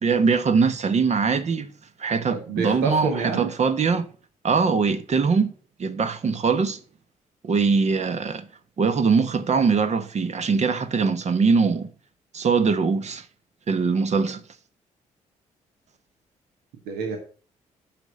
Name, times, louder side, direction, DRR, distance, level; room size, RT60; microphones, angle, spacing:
voice 1, 0.0-1.7 2.0-4.1 4.4-5.5 5.8-6.8 7.4-8.5 8.8-11.9 12.3-13.2 13.7-14.4, right 5 dB, 40° right, 1.2 m, -22 dB
voice 2, 2.3-3.5 16.9-17.2, right 4 dB, 65° right, 1.6 m, -28 dB
10.5 x 6.0 x 6.4 m
figure-of-eight pair, 40°, 17 cm